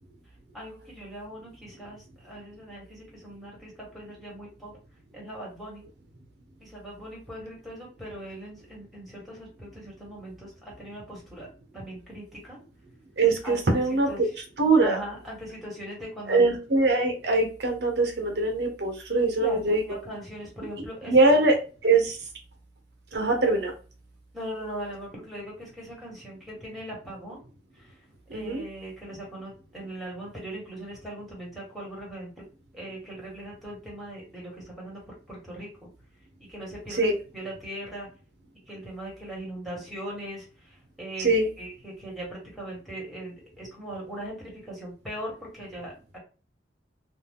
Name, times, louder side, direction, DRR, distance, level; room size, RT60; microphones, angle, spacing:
voice 1, 0.5-4.7 5.1-5.8 6.6-11.5 11.7-12.6 13.4-13.8 14.1-14.3 14.8-16.5 19.4-21.5 24.3-27.4 27.7-28.0 28.3-32.4 32.7-35.9 36.5-38.1 38.7-46.2, right 1 dB, ahead, -4 dB, 1.3 m, -40 dB
voice 2, 13.2-14.1 14.6-15.0 16.3-19.8 21.1-21.6 21.8-22.2 23.1-23.7 28.3-28.6 37.0-37.1 41.2-41.5, right 3 dB, 65° right, 3 dB, 0.9 m, -22 dB
2.6 x 2.2 x 3.6 m, 0.36 s
head